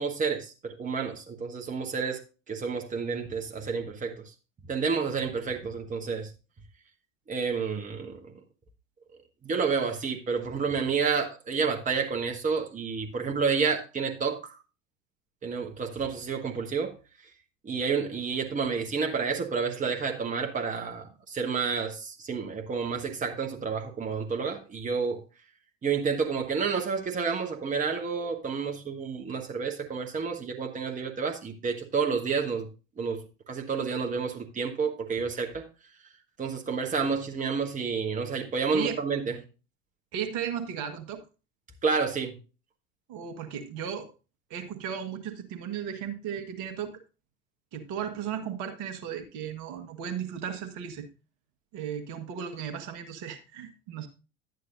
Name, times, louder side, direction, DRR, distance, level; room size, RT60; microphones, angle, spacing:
voice 1, 0.0-2.2 2.5-4.3 4.7-6.3 7.3-8.2 9.4-14.6 15.4-17.0 17.6-25.2 25.8-32.7 33.0-35.7 36.4-39.4 41.8-42.3, right 5 dB, 20° right, 1.3 m, -30 dB
voice 2, 40.1-41.2 43.1-44.1 44.5-47.0 47.7-51.1 51.7-54.1, right 8 dB, 50° right, 1.5 m, -35 dB
11.5 x 9.2 x 2.6 m
figure-of-eight pair, 75°, 39 cm